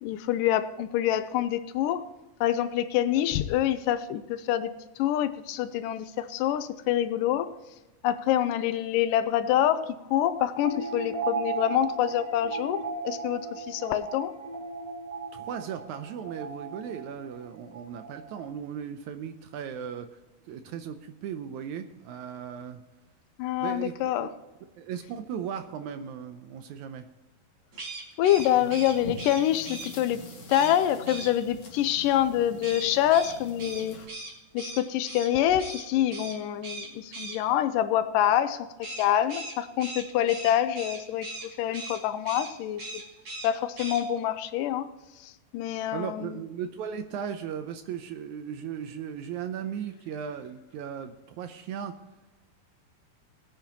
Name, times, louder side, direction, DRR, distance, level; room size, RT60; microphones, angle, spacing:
voice 1, 0.0-2.1 2.4-7.5 8.0-14.4 23.4-24.3 28.2-30.2 30.5-34.3 34.5-38.7 39.0-41.3 41.6-43.0 43.4-44.9 45.2-46.4, left 11 dB, 90° left, 12 dB, 2.3 m, -26 dB
sound 1, 10.6-18.5, right 4 dB, 15° right, 2.7 m, -36 dB
voice 2, 15.3-20.2 20.5-22.8 23.6-23.9 24.2-24.3 24.8-27.1 28.6-28.8 45.9-52.0, right 8 dB, 80° right, 8 dB, 1.8 m, -37 dB
sound 2, 27.7-29.9 30.5-30.8 31.1-31.3 32.6-35.3 35.6-35.8 36.1-36.4 36.6-37.4 38.8-41.5 41.7-42.0 42.2-42.5 42.8-43.5 43.8-44.0, right 2 dB, 35° right, 2.9 m, -39 dB
sound 3, 28.3-34.1, left 1 dB, 50° left, 2.6 m, -45 dB
21.0 x 9.0 x 3.0 m, 1.1 s
omnidirectional pair, 3.9 m